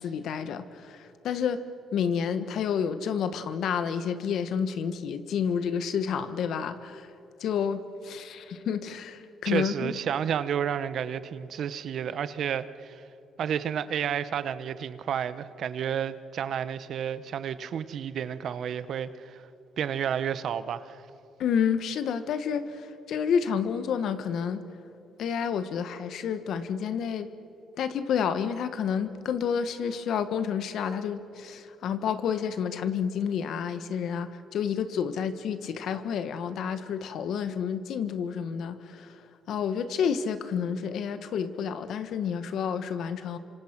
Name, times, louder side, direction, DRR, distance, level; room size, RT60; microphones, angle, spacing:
voice 1, 0.0-1.7 1.9-7.1 7.4-9.9 21.4-24.6 25.2-27.3 27.8-43.4, left 7 dB, 75° left, 11 dB, 1.4 m, -30 dB
voice 2, 9.4-13.0 13.4-19.5 19.8-21.0, right 8 dB, 65° right, 14 dB, 1.0 m, -31 dB
27.5 x 26.0 x 6.1 m, 2.8 s
cardioid pair, 90°, 0 cm